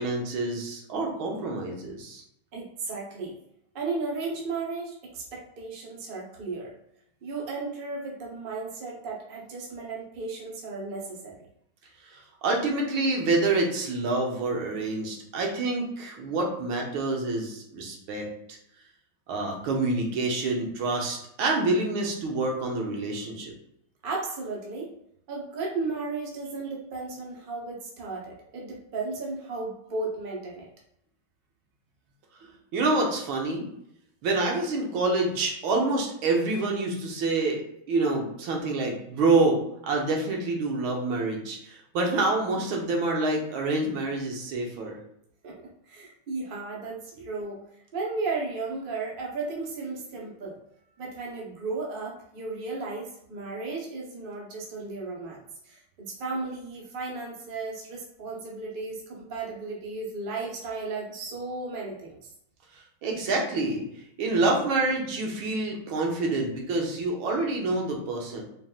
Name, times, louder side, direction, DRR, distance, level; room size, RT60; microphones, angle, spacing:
voice 1, 0.0-2.2 12.1-18.2 19.3-23.5 32.7-33.6 34.2-37.6 37.9-45.0 63.0-63.8 64.2-68.4, right 2 dB, 75° right, 0 dB, 1.6 m, -27 dB
voice 2, 2.5-3.4 3.7-6.7 7.2-11.3 24.0-24.9 25.3-30.7 45.4-45.5 45.9-47.6 47.9-50.6 51.0-55.4 55.6-62.3, right 3 dB, 45° right, -3 dB, 0.7 m, -34 dB
4.6 x 3.4 x 2.4 m, 0.75 s
omnidirectional pair, 2.3 m